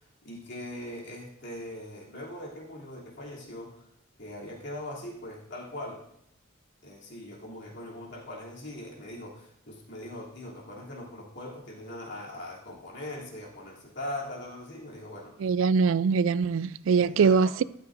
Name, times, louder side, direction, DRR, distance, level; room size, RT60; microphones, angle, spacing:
voice 1, 0.2-3.9 4.2-6.1 6.8-15.5 17.1-17.6, left 1 dB, 60° left, 3.0 m, -41 dB
voice 2, 15.4-17.6, right 5 dB, 75° right, 0.4 m, -23 dB
13.0 x 12.5 x 2.6 m
head